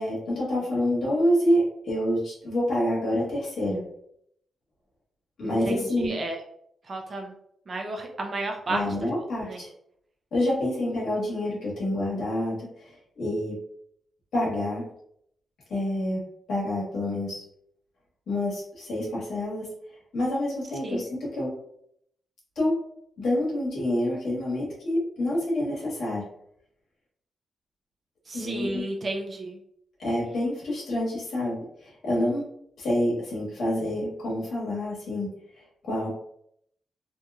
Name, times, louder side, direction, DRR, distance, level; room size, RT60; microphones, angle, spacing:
voice 1, 0.0-3.8 5.4-6.2 8.7-9.7 10.3-13.5 14.3-14.8 15.7-16.2 16.5-17.4 18.3-19.7 20.1-21.5 22.6-22.7 23.2-26.2 28.3-28.8 30.0-32.5 32.8-35.3 35.8-36.1, left 1 dB, 75° left, -5 dB, 1.3 m, -27 dB
voice 2, 5.4-6.4 6.9-7.3 7.7-8.8 9.5-9.6 20.8-21.0 28.3-29.6, right 2 dB, 40° right, 2 dB, 0.6 m, -32 dB
2.9 x 2.7 x 2.3 m, 0.71 s
wide cardioid pair, 130°, 0 cm